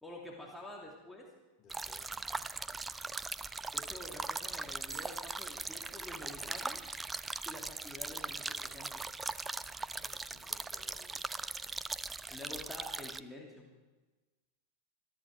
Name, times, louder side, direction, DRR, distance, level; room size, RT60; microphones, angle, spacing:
voice 1, 0.0-1.3 3.7-6.8 7.4-8.9 12.3-13.7, left 1 dB, 5° left, -2 dB, 2.8 m, -48 dB
voice 2, 1.6-2.5 6.3-6.5 9.9-11.3, left 5 dB, 30° left, 2 dB, 3.3 m, -62 dB
sound 1, 1.7-13.2, right 3 dB, 10° right, 0.5 m, -40 dB
Bicycle bell, 4.8-6.5, right 5 dB, 45° right, 4.6 m, -54 dB
21.5 x 14.0 x 4.8 m, 1.2 s
figure-of-eight pair, 90°, 0 cm